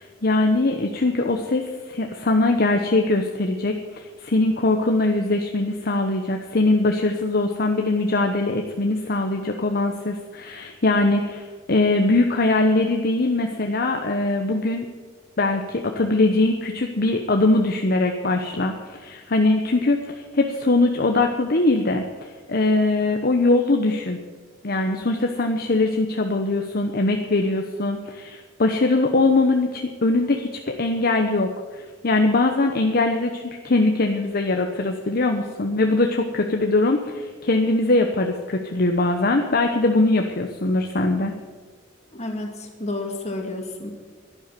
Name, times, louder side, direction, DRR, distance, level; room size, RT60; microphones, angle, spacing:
voice 1, 0.0-14.8 15.4-22.0 22.5-24.2 24.6-41.3, left 2 dB, 50° left, 4 dB, 1.0 m, -21 dB
voice 2, 42.1-43.9, left 2 dB, 35° left, 2 dB, 2.6 m, -31 dB
12.0 x 11.0 x 9.4 m, 1.4 s
head